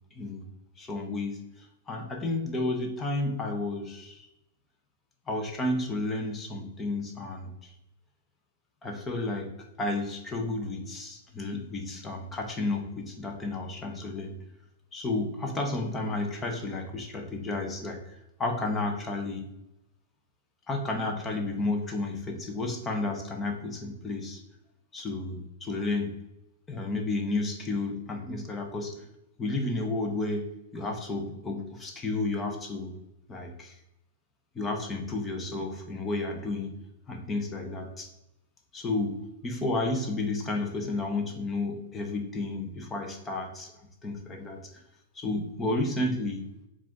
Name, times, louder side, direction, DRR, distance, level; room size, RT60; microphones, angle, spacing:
voice 1, 0.1-0.4 0.8-4.3 5.3-7.7 8.8-14.4 14.9-19.5 20.7-24.4 24.9-26.1 26.7-29.0 29.4-32.9 33.3-33.8 34.5-36.7 37.1-38.1 38.7-43.7 44.0-44.7 45.1-46.4, left 2 dB, 15° left, 2 dB, 0.5 m, -32 dB
4.8 x 2.4 x 3.5 m, 0.91 s
supercardioid pair, 160°, 0 cm